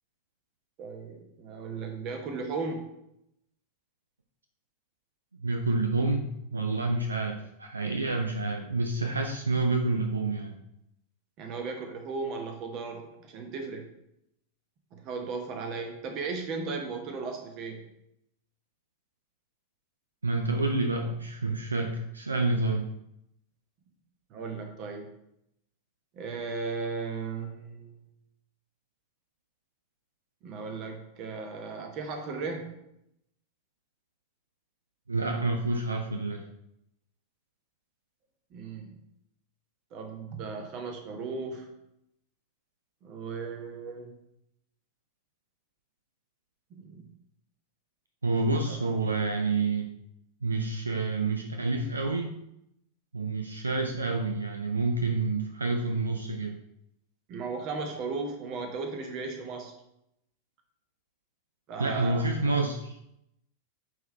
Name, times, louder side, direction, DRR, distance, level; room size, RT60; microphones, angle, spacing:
voice 1, 0.8-2.9 11.4-13.9 14.9-17.9 24.3-25.1 26.1-28.0 30.4-32.8 38.5-38.9 39.9-41.7 43.0-44.1 46.7-47.1 48.7-48.8 57.3-59.7 61.7-62.4, right 4 dB, 40° right, 4 dB, 1.1 m, -36 dB
voice 2, 5.4-6.3 6.5-10.5 20.2-22.9 35.1-36.4 48.2-49.9 50.4-52.4 53.1-56.6 61.8-63.0, right 3 dB, 80° right, 3 dB, 0.5 m, -28 dB
9.1 x 3.5 x 3.2 m, 0.79 s
figure-of-eight pair, 90°, 0 cm